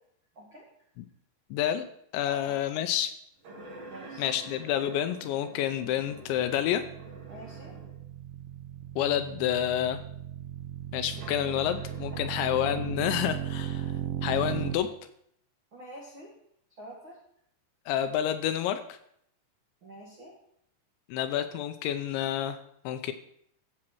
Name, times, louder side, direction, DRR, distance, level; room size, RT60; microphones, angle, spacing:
voice 1, 0.3-0.7 2.2-2.6 3.9-4.2 7.3-7.7 12.1-12.4 15.7-16.3 16.8-17.2 19.8-20.3, equal, 65° right, -3 dB, 1.2 m, -46 dB
voice 2, 1.5-1.9 2.1-3.1 4.2-6.8 9.0-10.0 10.9-13.9 14.2-14.9 17.9-19.0 21.1-22.6 22.9-23.1, left 11 dB, 80° left, 9 dB, 2.8 m, -29 dB
sound 1, 3.4-8.1 8.8-8.9 11.0-13.6, right 2 dB, 50° right, 4.0 m, -48 dB
sound 2, 6.0-14.7, right 11 dB, 80° right, 2.1 m, -37 dB
13.5 x 7.5 x 4.5 m, 0.71 s
omnidirectional pair, 5.4 m